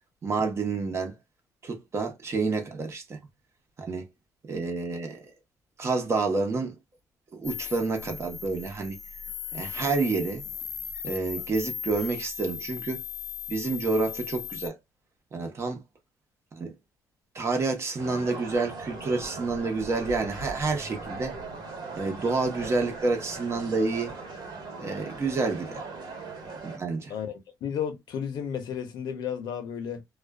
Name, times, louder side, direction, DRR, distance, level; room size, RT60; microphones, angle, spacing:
voice 1, 0.2-1.2 1.6-3.2 3.8-4.1 4.5-5.3 5.8-6.7 7.3-9.0 9.5-10.4 11.0-13.0 13.5-14.8 15.3-15.8 16.5-16.7 17.3-21.4 22.0-24.1 24.8-25.8 26.6-27.1, right 3 dB, 40° right, 0.9 m, -29 dB
sound 1, 7.4-14.7, left 8 dB, 50° left, 0.4 m, -38 dB
sound 2, 18.0-26.8, right 3 dB, 70° right, 1.2 m, -39 dB
voice 2, 27.1-30.0, left 8 dB, 70° left, 0.8 m, -33 dB
2.4 x 2.3 x 2.2 m
cardioid pair, 100°, 7 cm